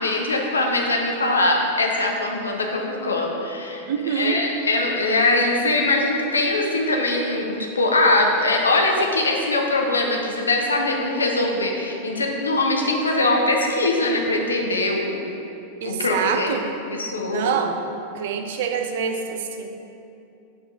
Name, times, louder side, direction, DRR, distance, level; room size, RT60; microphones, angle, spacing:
voice 1, 0.0-15.2 15.8-17.6, left 2 dB, 75° left, 1 dB, 0.8 m, -22 dB
voice 2, 3.9-4.4 15.8-16.7 17.3-17.8 18.1-19.7, right 7 dB, 55° right, 5 dB, 0.6 m, -25 dB
6.6 x 4.6 x 5.2 m, 2.7 s
figure-of-eight pair, 90°, 0 cm